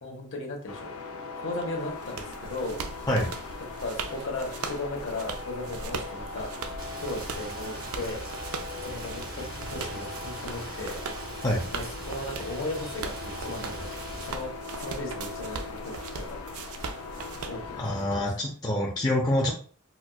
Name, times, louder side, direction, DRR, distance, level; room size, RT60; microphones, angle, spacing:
voice 1, 0.0-0.9 1.4-2.9 3.8-6.5 7.0-8.2 8.7-11.0 11.7-13.9 14.2-14.5 14.8-16.4 17.5-18.2, left 2 dB, 55° left, 2 dB, 0.9 m, -36 dB
sound 1, 0.7-18.3, left 3 dB, 75° left, 0.5 m, -40 dB
sound 2, 1.6-18.2, right 4 dB, 70° right, 0.4 m, -40 dB
Rain, 6.8-14.3, right 2 dB, 40° right, 0.7 m, -42 dB
voice 2, 17.8-19.5, left 1 dB, 15° left, -2 dB, 0.5 m, -26 dB
4.2 x 2.3 x 2.3 m, 0.41 s
head